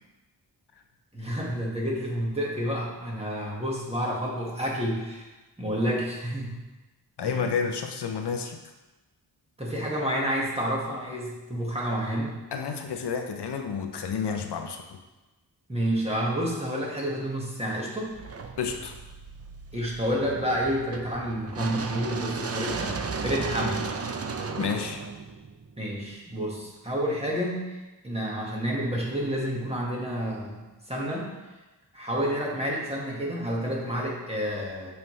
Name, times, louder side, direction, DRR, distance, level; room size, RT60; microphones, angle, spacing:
voice 1, 1.1-5.3 5.6-6.6 7.2-7.4 9.6-12.3 15.7-18.2 19.7-23.8 25.8-31.3 31.9-34.9, equal, 15° right, -4 dB, 1.6 m, -29 dB
voice 2, 7.2-8.6 12.5-15.0 18.6-19.0 24.5-25.0, left 6 dB, 75° left, 5 dB, 0.7 m, -30 dB
sound 1, 18.1-26.2, right 5 dB, 35° right, 0.5 m, -35 dB
7.5 x 5.7 x 3.2 m, 1.1 s
wide cardioid pair, 110°, 41 cm